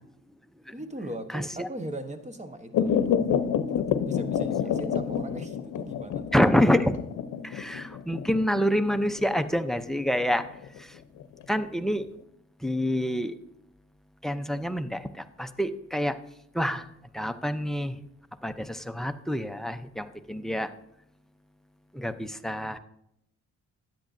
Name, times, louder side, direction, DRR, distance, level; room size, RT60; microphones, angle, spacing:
voice 1, 0.7-3.0 3.8-6.3, right 1 dB, 25° right, 7 dB, 1.1 m, -39 dB
voice 2, 1.3-1.7 6.3-6.9 7.4-10.4 10.8-11.0 11.5-12.1 12.6-13.3 14.2-16.2 16.5-16.9 17.1-18.0 18.4-20.7 21.9-22.8, equal, ahead, 11 dB, 0.6 m, -27 dB
sound 1, 2.7-11.6 12.0-12.1, left 8 dB, 75° left, 0.7 m, -28 dB
13.0 x 9.3 x 2.6 m, 0.77 s
cardioid pair, 90°, 30 cm